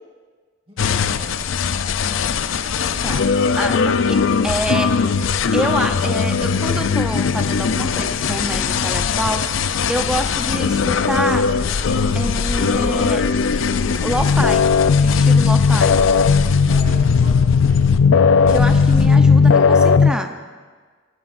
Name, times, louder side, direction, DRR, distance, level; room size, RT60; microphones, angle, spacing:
voice 1, 0.7-1.3 16.7-18.0 18.4-19.2, equal, 25° right, -1 dB, 1.7 m, -38 dB
sound 1, 0.8-20.1, left 5 dB, 75° left, 0.5 m, -17 dB
voice 2, 3.6-4.9 5.5-11.5 12.1-13.2 13.9-14.7 15.0-15.9 18.5-20.4, right 1 dB, 5° right, 5 dB, 0.6 m, -26 dB
18.0 x 13.5 x 2.6 m, 1.5 s
head